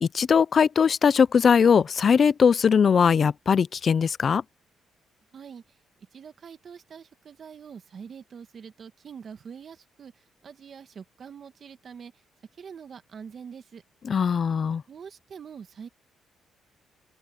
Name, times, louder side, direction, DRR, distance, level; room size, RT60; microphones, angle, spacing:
voice 1, 0.0-4.4 14.0-14.8, left 6 dB, 45° left, 0.5 m, -20 dB
voice 2, 5.3-5.6 6.1-12.1 12.6-13.8 14.9-15.9, right 7 dB, 50° right, 1.8 m, -44 dB
open air
cardioid pair, 90°, 0 cm